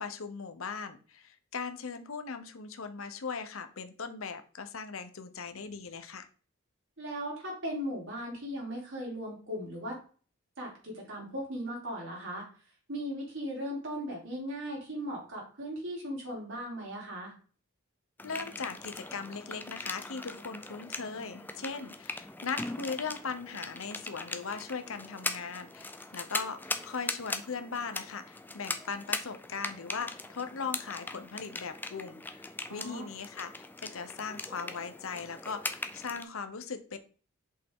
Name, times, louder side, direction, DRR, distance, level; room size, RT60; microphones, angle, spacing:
voice 1, 0.0-6.3 18.2-37.0, left 5 dB, 70° left, 9 dB, 0.9 m, -39 dB
voice 2, 7.0-10.0 10.6-12.5 12.9-17.3 32.7-33.1, equal, 60° right, -3 dB, 3.7 m, -38 dB
sound 1, 18.2-36.2, left 2 dB, 10° left, 0.5 m, -40 dB
6.7 x 5.4 x 3.7 m, 0.40 s
head